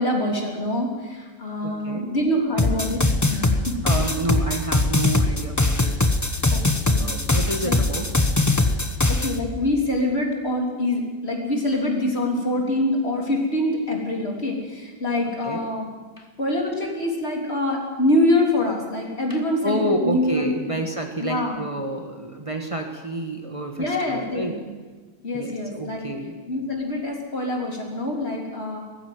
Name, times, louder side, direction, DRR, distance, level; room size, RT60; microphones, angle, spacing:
voice 1, 0.0-3.8 6.5-6.6 6.9-7.1 7.6-7.8 9.1-15.9 16.4-20.8 21.2-21.7 23.8-24.6 25.2-26.1 26.5-28.8, left 1 dB, 50° left, 0 dB, 3.7 m, -25 dB
voice 2, 1.6-2.1 3.8-6.5 7.0-8.1 15.4-15.6 16.2-16.3 19.3-24.6 25.3-26.4, right 2 dB, 25° right, 3 dB, 1.6 m, -29 dB
sound 1, 2.6-9.4, left 2 dB, 15° left, 1.0 m, -21 dB
18.5 x 15.0 x 9.5 m, 1.4 s
omnidirectional pair, 1.4 m